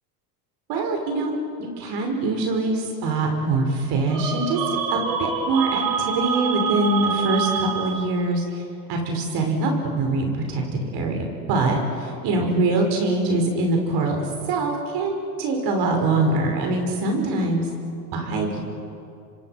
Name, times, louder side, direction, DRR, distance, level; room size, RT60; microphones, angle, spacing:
voice 1, 0.7-1.3 1.6-4.6 4.9-8.6 8.9-17.7 18.1-18.6, right 2 dB, 50° right, 2 dB, 6.1 m, -23 dB
sound 1, 4.1-8.3, right 6 dB, 85° right, 3.8 m, -26 dB
27.0 x 25.0 x 6.2 m, 2.5 s
hypercardioid pair, 90°, 49 cm